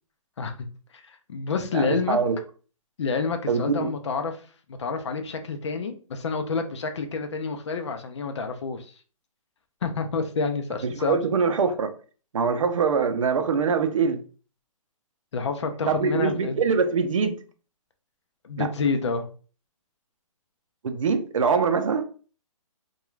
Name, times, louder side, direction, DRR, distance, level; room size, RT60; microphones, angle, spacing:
voice 1, 0.9-2.2 3.0-4.4 4.7-8.9 9.8-11.2 15.3-16.6 18.4-19.3, left 4 dB, 55° left, 0.5 m, -28 dB
voice 2, 1.7-2.4 3.5-3.9 10.8-11.9 12.3-14.2 15.9-17.4 18.6-18.7 20.8-22.0, right 5 dB, 65° right, 0.5 m, -23 dB
2.3 x 2.3 x 3.0 m
hypercardioid pair, 180°, 18 cm